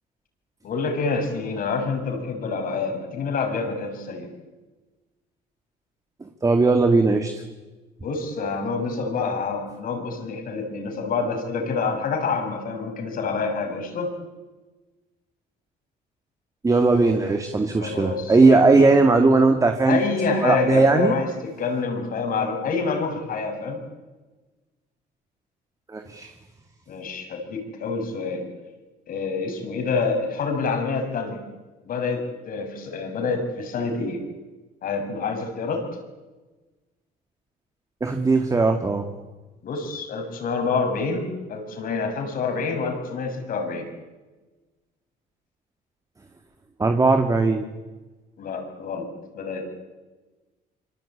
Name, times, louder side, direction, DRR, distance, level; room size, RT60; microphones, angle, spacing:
voice 1, 0.6-4.3 8.0-14.2 17.8-18.9 19.8-23.8 26.9-28.5 29.1-31.4 31.8-34.3 34.8-35.9 39.6-43.9 48.4-49.1 49.3-49.6, left 4 dB, 55° left, 5 dB, 6.5 m, -27 dB
voice 2, 6.2-7.3 16.6-20.0 20.4-21.1 25.9-26.3 38.0-39.1 46.8-47.7, right 3 dB, 20° right, 5 dB, 2.3 m, -18 dB
26.0 x 24.5 x 8.8 m, 1.2 s
cardioid pair, 110°, 17 cm